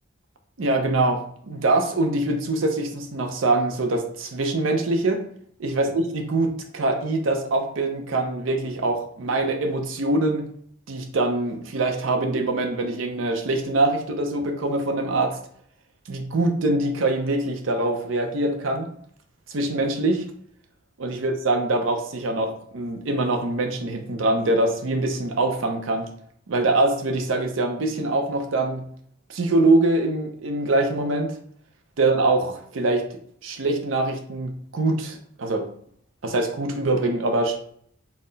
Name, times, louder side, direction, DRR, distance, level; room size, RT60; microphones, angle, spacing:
voice 1, 0.6-5.2 5.6-10.5 10.9-15.4 16.1-18.9 19.5-20.2 21.0-26.1 26.5-28.8 29.3-31.3 32.0-33.0 33.4-35.7 36.2-37.6, right 2 dB, 80° right, 5 dB, 0.6 m, -24 dB
4.1 x 2.0 x 3.9 m, 0.62 s
head